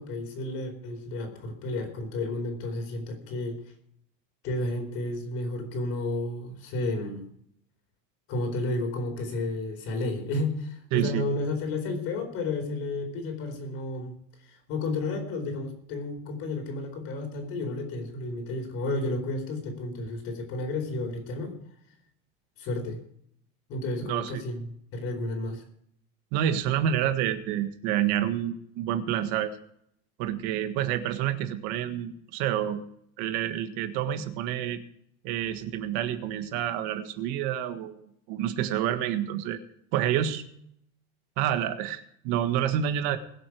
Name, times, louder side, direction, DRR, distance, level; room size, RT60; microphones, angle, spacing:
voice 1, 0.0-3.6 4.4-7.3 8.3-14.1 14.4-21.6 22.6-23.0 23.7-25.6, left 2 dB, 45° left, 5 dB, 4.3 m, -32 dB
voice 2, 10.9-11.2 24.1-24.4 26.3-29.5 30.2-32.8 33.2-34.8 35.2-38.0 38.3-39.6 39.9-40.4 41.4-43.2, right 10 dB, 60° right, 8 dB, 1.6 m, -28 dB
22.5 x 7.8 x 4.9 m, 0.70 s
cardioid pair, 180°, 32 cm